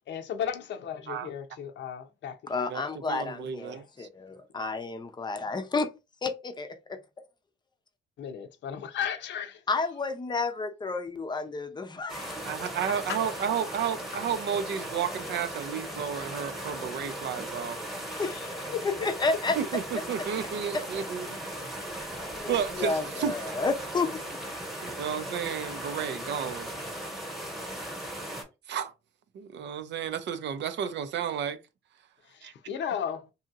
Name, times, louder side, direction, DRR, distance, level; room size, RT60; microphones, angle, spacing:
voice 1, 0.1-2.7 3.7-3.8 8.2-9.6 12.5-12.6 13.1-13.2 18.1-18.9 32.3-33.2, left 8 dB, 65° left, 0.6 m, -35 dB
voice 2, 2.5-5.9 6.2-7.0 9.7-12.5 18.2-18.4 18.8-19.6 20.7-20.8 22.2-24.2, left 3 dB, 20° left, 0.6 m, -31 dB
voice 3, 3.1-4.1 4.6-4.7 12.4-17.8 19.6-21.7 22.5-23.6 24.8-26.7 28.7-28.9 29.3-31.6 32.4-32.5, right 8 dB, 65° right, 0.5 m, -32 dB
sound 1, 12.1-28.4, right 1 dB, ahead, 1.1 m, -38 dB
2.7 x 2.7 x 2.4 m
cardioid pair, 90°, 20 cm